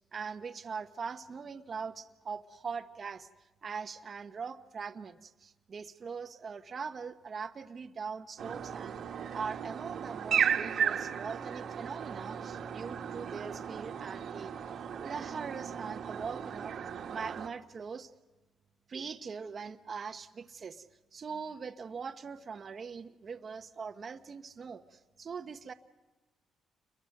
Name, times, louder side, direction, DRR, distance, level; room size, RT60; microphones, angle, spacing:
voice 1, 0.1-3.3 3.6-9.0 9.3-14.5 15.0-16.8 17.1-18.1 18.9-20.9 21.1-25.7, right 5 dB, 45° right, 6 dB, 1.1 m, -41 dB
sound 1, 8.4-17.5, right 8 dB, 65° right, 1.7 m, -35 dB
29.5 x 23.0 x 6.6 m, 1.2 s
cardioid pair, 90°, 0 cm